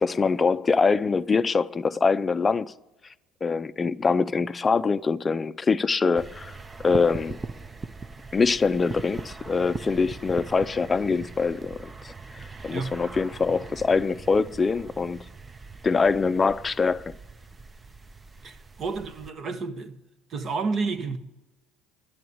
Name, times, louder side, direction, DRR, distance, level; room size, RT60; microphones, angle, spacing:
voice 1, 0.0-2.7 3.4-6.5 6.8-7.4 8.3-15.2 15.8-17.1, left 4 dB, 25° left, 0.5 m, -24 dB
sound 1, 6.1-19.3, right 3 dB, 20° right, 0.6 m, -40 dB
voice 2, 18.4-20.0 20.3-21.2, right 4 dB, 45° right, 1.2 m, -30 dB
11.0 x 8.0 x 9.6 m
supercardioid pair, 100°, 0 cm